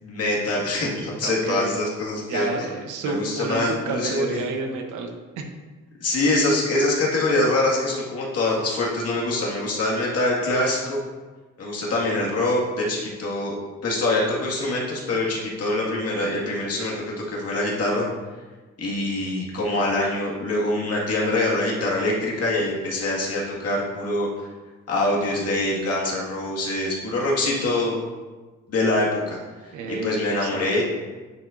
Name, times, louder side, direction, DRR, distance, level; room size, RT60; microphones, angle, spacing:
voice 1, 0.0-2.5 3.0-4.4 6.0-11.0 11.6-13.5 13.8-18.1 18.8-24.5 24.9-28.0 28.7-30.8, left 2 dB, 55° left, -3 dB, 1.9 m, -24 dB
voice 2, 1.2-1.7 2.3-5.1 5.4-5.5 29.7-30.7, right 4 dB, 85° right, 4 dB, 1.0 m, -30 dB
9.3 x 4.5 x 2.6 m, 1.3 s
cardioid pair, 90°, 30 cm